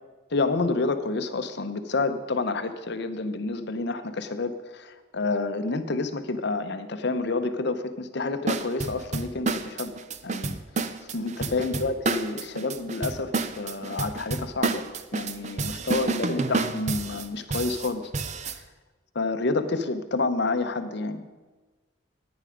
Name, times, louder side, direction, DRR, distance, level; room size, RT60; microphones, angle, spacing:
voice 1, 0.3-10.0 10.2-10.6 11.1-13.3 13.6-14.8 15.1-18.1 18.5-18.6 19.1-21.2, left 3 dB, 55° left, 10 dB, 0.7 m, -29 dB
sound 1, 8.5-18.6, right 3 dB, 35° right, 0.5 m, -30 dB
10.0 x 9.8 x 5.0 m, 1.3 s
head